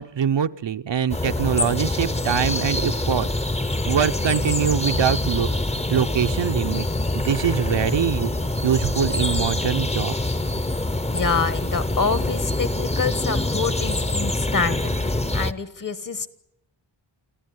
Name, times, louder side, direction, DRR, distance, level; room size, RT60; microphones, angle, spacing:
voice 1, 0.0-3.3 3.9-6.8 7.1-8.3 8.6-10.1, right 8 dB, 70° right, 9 dB, 0.9 m, -23 dB
sound 1, 1.1-15.5, left 2 dB, 15° left, 0.8 m, -25 dB
voice 2, 11.1-16.3, left 4 dB, 45° left, 14 dB, 1.5 m, -26 dB
25.5 x 15.0 x 9.5 m, 0.80 s
wide cardioid pair, 130°, 45 cm